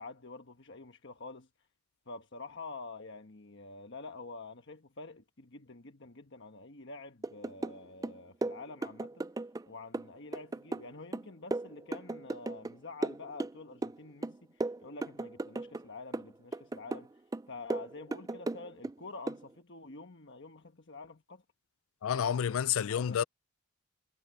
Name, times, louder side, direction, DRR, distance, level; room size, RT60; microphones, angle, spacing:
voice 1, 0.0-1.5 2.1-9.3 9.7-17.1 17.5-21.4 22.1-23.2, left 3 dB, 55° left, 1.3 m, -48 dB
sound 1, 7.2-9.7 9.9-12.7 13.0-14.0 14.2-15.8 16.1-17.1 17.3-18.9 19.3-19.4, right 2 dB, 15° right, 0.3 m, -36 dB
voice 2, 22.0-23.2, left 8 dB, 70° left, 0.4 m, -29 dB
head